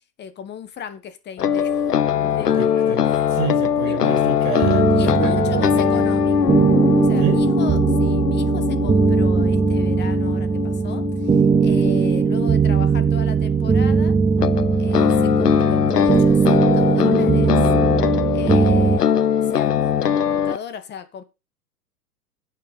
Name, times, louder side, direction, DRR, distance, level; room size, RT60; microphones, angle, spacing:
voice 1, 0.2-1.8 2.2-3.3 3.8-4.3 4.9-6.6 7.0-14.2 14.8-17.5 18.3-19.1 19.4-21.2, left 8 dB, 25° left, 1.4 m, -35 dB
sound 1, 1.4-13.3 14.4-20.6, left 8 dB, 90° left, 0.8 m, -21 dB
voice 2, 2.4-6.0 7.2-7.4, right 9 dB, 35° right, 3.2 m, -29 dB
sound 2, 4.6-19.0, right 5 dB, 10° right, 0.5 m, -19 dB
10.0 x 7.8 x 5.5 m
hypercardioid pair, 105°, 46 cm